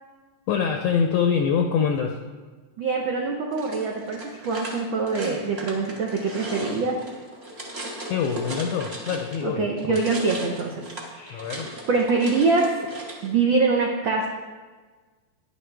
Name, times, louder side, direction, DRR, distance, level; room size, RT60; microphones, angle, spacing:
voice 1, 0.5-2.2 8.1-10.0 11.3-11.7, left 6 dB, 75° left, 4 dB, 1.5 m, -24 dB
voice 2, 2.8-7.0 9.4-10.8 11.1-11.5 11.9-12.9 13.2-14.3, right 4 dB, 85° right, 0 dB, 1.0 m, -24 dB
sound 1, 3.5-9.5 9.8-13.3, right 1 dB, 40° right, 0.9 m, -37 dB
10.0 x 9.7 x 3.4 m, 1.4 s
omnidirectional pair, 3.4 m